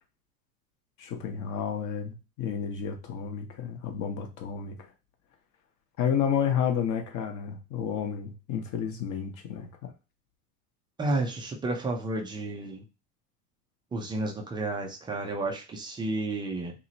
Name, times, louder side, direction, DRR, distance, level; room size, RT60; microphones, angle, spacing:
voice 1, 1.0-4.9 6.0-9.9, left 8 dB, 40° left, 5 dB, 0.8 m, -31 dB
voice 2, 11.0-12.8 13.9-16.7, right 2 dB, 10° right, 1 dB, 0.3 m, -31 dB
2.8 x 2.0 x 2.7 m, 0.29 s
hypercardioid pair, 95°, 45 cm